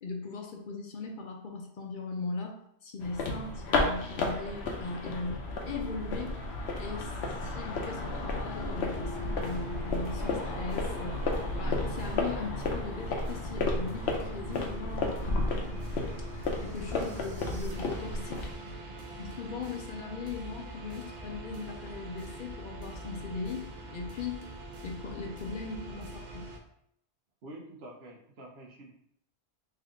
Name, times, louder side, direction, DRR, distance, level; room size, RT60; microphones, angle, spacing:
voice 1, 0.0-5.4 5.7-6.4 6.8-11.2 11.6-15.8 16.6-18.5 19.2-24.4 24.8-26.4, left 4 dB, 60° left, 2 dB, 0.6 m, -39 dB
sound 1, 3.0-18.5, left 2 dB, 80° left, 0.9 m, -33 dB
sound 2, 8.5-17.0, left 3 dB, 30° right, 1.3 m, -49 dB
sound 3, 9.1-26.6, right 1 dB, 50° right, 0.6 m, -44 dB
voice 2, 27.4-28.9, right 1 dB, 75° right, 1 dB, 1.0 m, -47 dB
3.4 x 2.7 x 3.6 m, 0.71 s
omnidirectional pair, 1.1 m